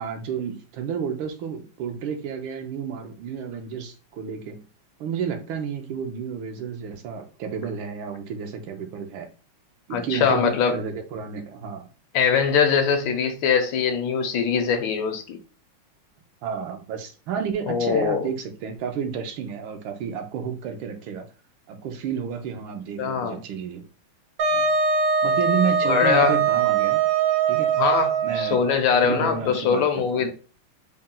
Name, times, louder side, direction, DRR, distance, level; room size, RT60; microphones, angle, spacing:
voice 1, 0.0-4.7 5.0-9.3 9.9-11.9 16.4-21.3 21.7-23.8 24.5-24.7 25.2-27.1 27.5-27.7 28.2-28.6 29.0-30.3, right 7 dB, 80° right, 1.5 m, -31 dB
voice 2, 9.9-10.8 12.1-15.4 17.7-18.3 23.0-23.4 25.9-26.4 27.8-30.3, left 6 dB, 75° left, 1.3 m, -22 dB
Wind instrument woodwind instrument, 24.4-28.8, right 6 dB, 65° right, 1.0 m, -22 dB
4.2 x 2.1 x 3.7 m
omnidirectional pair, 2.2 m